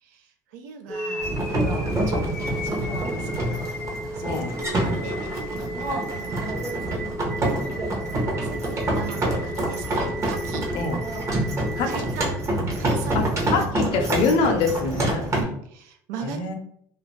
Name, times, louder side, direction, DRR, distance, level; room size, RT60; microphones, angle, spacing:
voice 1, 0.0-3.7 4.1-6.8 8.4-10.7 11.8-12.3 12.8-13.3 13.5-13.7 15.3-16.5, right 6 dB, 90° right, 5 dB, 0.4 m, -39 dB
sound 1, 0.9-12.9, equal, 10° left, 0.6 m, -35 dB
sound 2, 1.2-15.4, right 1 dB, 30° right, 0.8 m, -27 dB
voice 2, 4.2-4.6 10.7-11.0 11.8-12.1 13.1-13.3 13.5-15.3 16.2-16.5, left 4 dB, 60° left, 5 dB, 0.6 m, -24 dB
2.4 x 2.1 x 3.1 m, 0.66 s
supercardioid pair, 115°, 9 cm